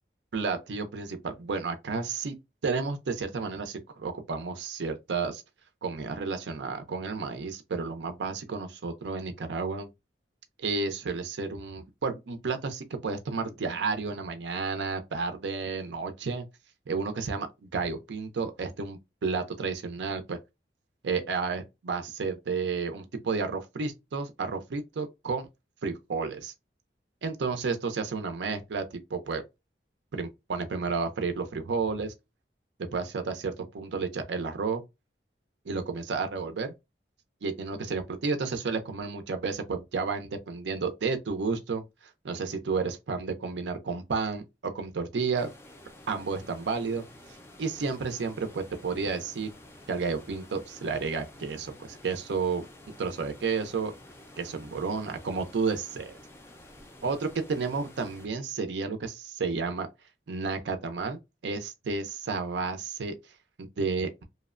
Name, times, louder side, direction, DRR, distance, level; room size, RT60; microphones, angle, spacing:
voice 1, 0.3-2.4 2.6-5.4 5.8-9.9 10.6-16.4 16.9-20.4 21.0-25.5 25.8-26.5 27.2-28.8 29.1-29.4 30.1-32.1 32.9-34.8 35.7-36.7 37.4-41.8 42.2-45.5 46.1-47.0 47.6-49.5 49.9-52.7 53.0-53.9 54.4-56.2 57.0-59.9 60.3-63.1 63.6-64.2, right 4 dB, 80° right, 0.5 m, -31 dB
sound 1, 45.3-58.3, left 1 dB, 15° left, 0.3 m, -51 dB
2.8 x 2.1 x 2.4 m
head